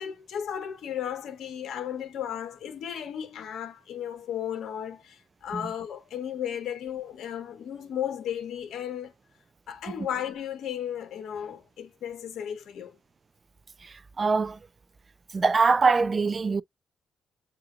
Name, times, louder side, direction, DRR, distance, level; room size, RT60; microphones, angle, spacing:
voice 1, 0.0-9.1 9.7-13.0, left 9 dB, 70° left, 1.3 m, -35 dB
voice 2, 13.8-14.6 15.3-16.6, right 4 dB, 35° right, 0.4 m, -24 dB
7.6 x 2.6 x 2.6 m
cardioid pair, 90°, 0 cm